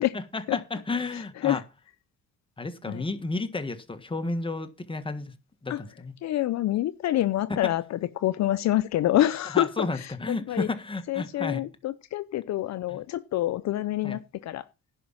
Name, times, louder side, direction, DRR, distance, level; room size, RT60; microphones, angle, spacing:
voice 1, 0.1-1.6 2.6-5.3 5.6-5.7 6.0-6.1 9.5-11.6 12.9-13.0 14.0-14.2, left 3 dB, 15° left, 1.5 m, -32 dB
voice 2, 1.0-1.6 2.9-3.0 5.7-5.8 6.2-10.7 11.1-14.6, left 14 dB, 65° left, 0.6 m, -27 dB
11.0 x 5.1 x 7.4 m
cardioid pair, 90°, 30 cm